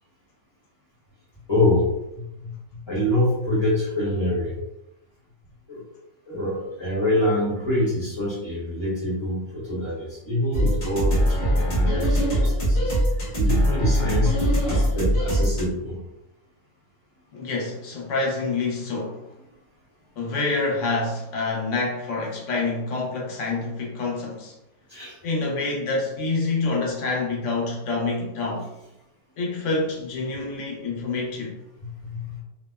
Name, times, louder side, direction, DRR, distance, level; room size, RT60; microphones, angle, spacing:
voice 1, 1.5-4.5 5.7-5.8 6.2-12.9 13.3-14.4 14.6-16.0 24.9-25.2 31.8-32.4, left 1 dB, 25° left, -9 dB, 1.0 m, -26 dB
sound 1, 10.5-15.6, equal, 45° left, 1.1 m, -22 dB
voice 2, 17.3-19.3 20.2-24.5 25.2-28.7 29.4-31.6, left 3 dB, 90° left, -2 dB, 1.1 m, -27 dB
2.7 x 2.0 x 2.2 m, 0.90 s
omnidirectional pair, 1.2 m